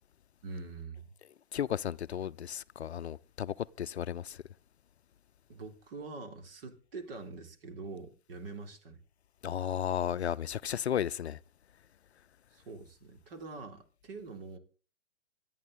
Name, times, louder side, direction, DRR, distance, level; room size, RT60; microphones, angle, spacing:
voice 1, 0.4-1.1 5.5-9.0 12.5-14.6, right 3 dB, 50° right, 3.5 m, -44 dB
voice 2, 1.5-4.4 9.4-11.4, left 9 dB, 60° left, 0.6 m, -34 dB
25.0 x 9.2 x 4.1 m
figure-of-eight pair, 115°, 36 cm